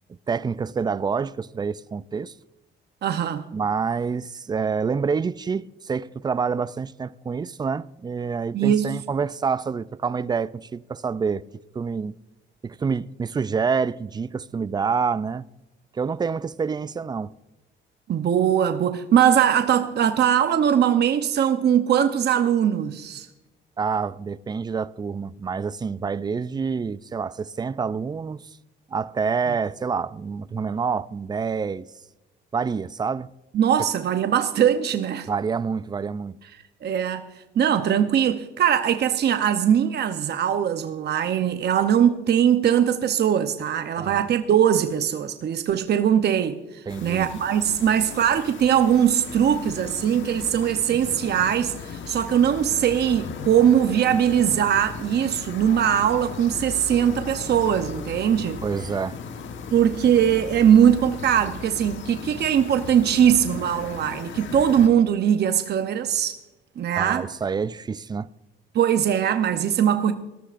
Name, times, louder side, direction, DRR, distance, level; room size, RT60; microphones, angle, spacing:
voice 1, 0.1-2.3 3.5-11.4 11.7-12.1 12.6-15.5 15.9-17.3 23.8-28.5 28.9-31.9 32.5-33.3 35.3-36.4 44.0-44.2 46.9-47.3 58.6-59.2 66.9-68.3, right 5 dB, 20° right, 0.3 m, -27 dB
voice 2, 3.0-3.4 8.5-9.0 18.1-23.3 33.5-35.3 36.8-37.3 37.6-58.6 59.7-66.4 66.8-67.3 68.7-70.1, right 9 dB, 55° right, 0.7 m, -21 dB
sound 1, 46.9-64.9, left 5 dB, 70° left, 1.3 m, -37 dB
19.5 x 13.0 x 2.5 m
cardioid pair, 90°, 20 cm